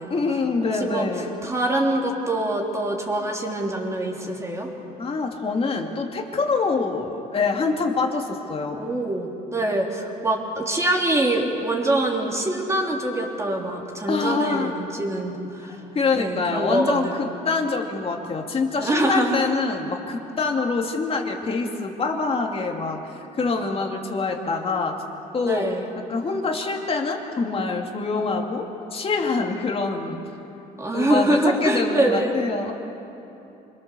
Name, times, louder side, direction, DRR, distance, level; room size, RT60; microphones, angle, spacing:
voice 1, 0.1-1.4 5.0-8.8 14.1-14.7 15.7-23.1 23.4-25.0 25.3-25.7 26.1-30.2 30.9-32.7, left 4 dB, 35° left, 2 dB, 2.4 m, -25 dB
voice 2, 0.6-1.1 1.4-4.7 8.7-15.8 16.1-17.2 18.7-19.4 25.4-25.8 30.8-32.3, right 1 dB, 15° right, 0 dB, 3.3 m, -24 dB
26.5 x 22.0 x 6.9 m, 2.9 s
cardioid pair, 110°, 17 cm